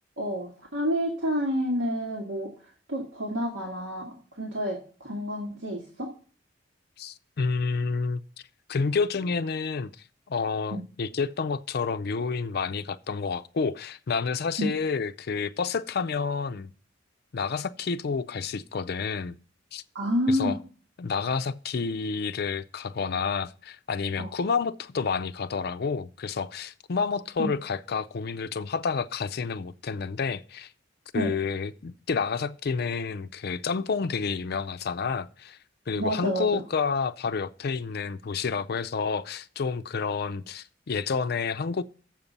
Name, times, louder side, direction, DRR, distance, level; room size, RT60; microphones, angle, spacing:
voice 1, 0.2-2.5 2.9-6.1 10.7-10.8 14.6-14.7 20.0-20.6 24.2-24.3 27.4-27.5 31.1-31.3 35.9-36.6, equal, 90° right, 1.7 m, -29 dB
voice 2, 7.0-8.2 8.7-9.9 10.3-16.7 17.3-19.4 19.7-19.8 20.3-20.6 21.0-30.7 31.1-35.6 35.9-41.8, left 5 dB, 55° left, 0.5 m, -29 dB
7.5 x 5.3 x 7.2 m
head